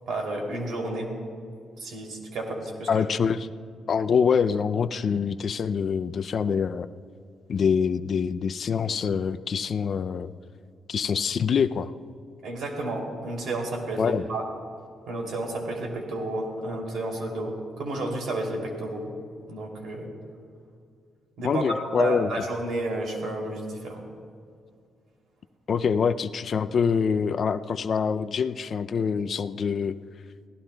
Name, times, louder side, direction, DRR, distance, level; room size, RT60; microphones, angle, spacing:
voice 1, 0.1-1.1 1.8-3.0 12.4-14.4 15.1-19.1 19.5-20.1 21.4-21.7 21.9-24.0, right 2 dB, 75° right, 1 dB, 2.7 m, -31 dB
voice 2, 2.9-3.5 3.9-6.9 7.5-10.3 10.9-11.9 14.0-14.2 21.4-22.4 25.7-30.0, left 6 dB, 45° left, 10 dB, 0.3 m, -25 dB
24.0 x 16.0 x 2.2 m, 2.2 s
wide cardioid pair, 165°, 0 cm